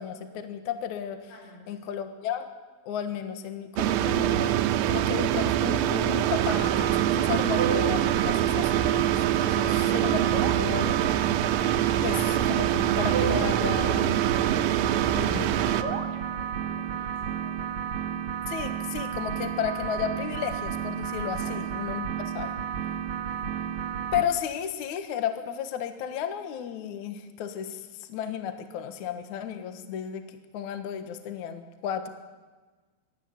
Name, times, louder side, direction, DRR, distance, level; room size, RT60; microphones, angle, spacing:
voice 1, 0.0-1.3 1.7-2.5 2.8-4.6 4.9-11.0 12.0-14.2 15.1-15.5 18.5-22.5 24.1-32.1, left 9 dB, 75° left, 8 dB, 1.7 m, -33 dB
voice 2, 1.3-1.8 14.9-17.8 21.4-21.6, left 2 dB, 50° left, -1 dB, 7.3 m, -50 dB
sound 1, 3.8-15.8, right 12 dB, 85° right, 3.6 m, -24 dB
sound 2, 6.4-24.2, right 7 dB, 60° right, 2.0 m, -32 dB
24.0 x 13.0 x 9.9 m, 1.3 s
omnidirectional pair, 5.9 m